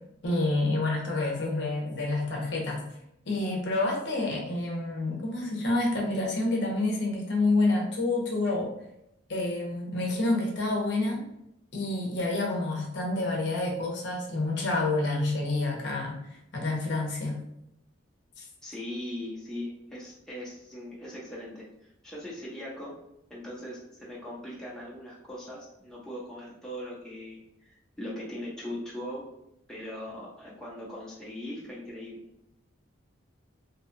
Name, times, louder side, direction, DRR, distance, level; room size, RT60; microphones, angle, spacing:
voice 1, 0.2-2.8 3.3-8.7 9.3-11.2 11.7-16.2 16.5-17.4 18.4-18.5, left 2 dB, 55° left, -1 dB, 0.7 m, -28 dB
voice 2, 18.6-21.7 22.0-27.7 28.0-29.3 29.7-32.2, left 1 dB, 5° left, -7 dB, 0.6 m, -40 dB
2.7 x 2.2 x 2.6 m, 0.81 s
head